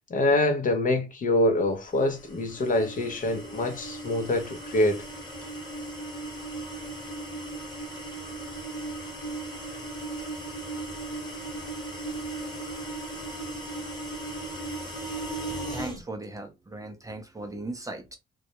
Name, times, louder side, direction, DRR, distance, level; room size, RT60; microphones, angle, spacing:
voice 1, 0.1-5.0, left 1 dB, 40° left, 0.6 m, -25 dB
sound 1, 2.1-16.0, right 2 dB, 20° left, 1.1 m, -37 dB
voice 2, 15.7-18.2, right 2 dB, 15° right, 0.5 m, -38 dB
2.2 x 2.0 x 2.8 m
cardioid pair, 90°, 20 cm